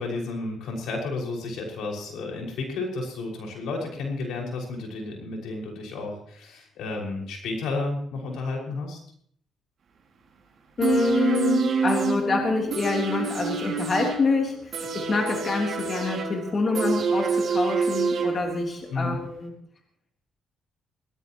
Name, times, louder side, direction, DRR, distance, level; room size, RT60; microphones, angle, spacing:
voice 1, 0.0-9.0 18.9-19.2, left 3 dB, 85° left, 0 dB, 6.0 m, -32 dB
voice 2, 10.8-19.5, left 4 dB, 40° left, 0 dB, 3.5 m, -26 dB
sound 1, 10.8-18.8 19.1-19.2, right 5 dB, 55° right, 6.7 m, -27 dB
21.5 x 19.0 x 3.1 m, 0.63 s
cardioid pair, 90°, 0 cm